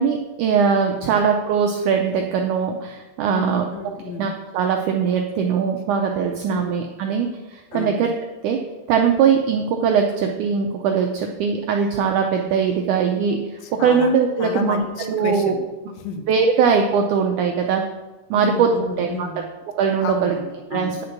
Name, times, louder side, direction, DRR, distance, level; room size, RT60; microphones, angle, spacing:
voice 1, 0.0-3.7 4.2-8.1 8.4-8.6 8.9-15.5 16.3-17.8 18.3-18.7 19.0-19.3 19.8-20.4 20.7-21.0, right 6 dB, 90° right, 3 dB, 1.7 m, -21 dB
voice 2, 3.3-4.3 6.5-6.7 7.7-8.1 13.6-14.1 14.4-15.6 15.9-16.3 18.3-19.4 20.0-21.0, left 5 dB, 80° left, 6 dB, 2.6 m, -31 dB
10.0 x 5.1 x 5.8 m, 1.1 s
omnidirectional pair, 4.3 m